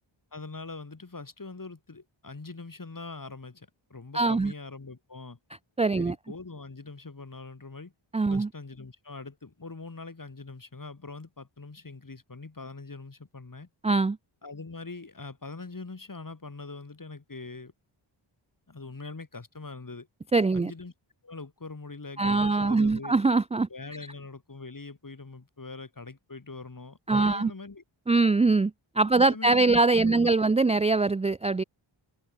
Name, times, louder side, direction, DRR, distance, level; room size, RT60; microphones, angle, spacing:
voice 1, 0.3-5.4 6.0-7.9 8.3-13.7 14.4-17.7 18.7-20.1 20.5-20.9 21.2-23.1 23.7-27.8 29.2-30.3, left 3 dB, 40° left, 5.2 m, -42 dB
voice 2, 4.1-4.5 5.8-6.1 8.1-8.5 13.8-14.2 20.3-20.7 22.2-23.7 27.1-27.5 28.1-31.6, right 3 dB, 15° right, 0.3 m, -23 dB
open air
wide cardioid pair, 80°, 49 cm